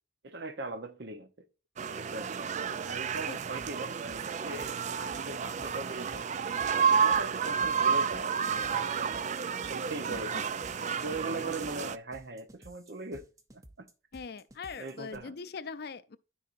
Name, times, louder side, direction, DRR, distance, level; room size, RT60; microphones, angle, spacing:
voice 1, 0.2-1.5 1.9-2.4 2.8-6.2 6.7-9.2 9.6-10.4 11.0-13.2 13.5-13.9 14.7-15.4, right 2 dB, 65° right, 0.9 m, -40 dB
sound 1, 1.8-12.0, right 6 dB, 40° right, 0.4 m, -31 dB
sound 2, 3.3-15.2, right 1 dB, 20° right, 0.7 m, -55 dB
voice 2, 14.1-16.2, left 5 dB, 60° left, 0.5 m, -42 dB
12.5 x 4.9 x 2.6 m
head